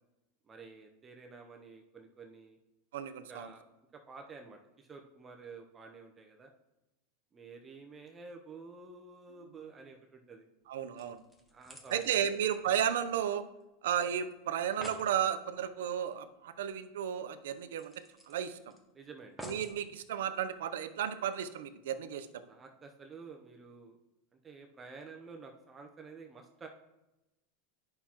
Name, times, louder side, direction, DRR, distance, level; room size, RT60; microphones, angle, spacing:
voice 1, 0.5-2.6 3.3-3.6 3.9-6.5 7.3-10.5 11.5-12.3 18.9-19.4 22.5-24.0 24.4-26.7, right 4 dB, 25° right, 2 dB, 0.7 m, -50 dB
voice 2, 2.9-3.5 10.7-11.2 11.9-13.4 13.8-17.9 18.3-18.7 19.4-22.3, right 9 dB, 80° right, 10 dB, 0.6 m, -33 dB
sound 1, 10.6-10.7 11.0-13.6 13.9-14.0 14.3-14.4 14.6-15.1 16.6-16.7 17.1-17.2 17.8-18.8 19.4-19.8 20.5-20.6, equal, ahead, 1.2 m, -50 dB
9.6 x 5.7 x 2.9 m, 0.98 s
hypercardioid pair, 110°, 0 cm